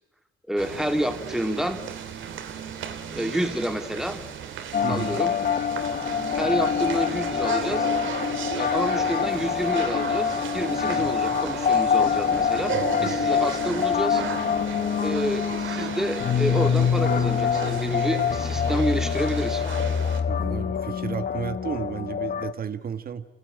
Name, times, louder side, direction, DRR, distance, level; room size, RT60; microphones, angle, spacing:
voice 1, 0.5-1.8 3.1-4.3 4.9-5.4 6.4-7.9 8.5-14.2 15.0-19.6, equal, ahead, 6 dB, 2.8 m, -29 dB
sound 1, 0.6-20.2, right 8 dB, 75° right, 2.6 m, -35 dB
sound 2, 4.7-22.5, left 7 dB, 50° left, 0.9 m, -25 dB
voice 2, 4.8-5.2 11.0-11.1 12.7-13.3 20.3-23.2, right 7 dB, 50° right, 10 dB, 1.5 m, -33 dB
29.0 x 17.5 x 9.2 m, 1.1 s
cardioid pair, 90°, 20 cm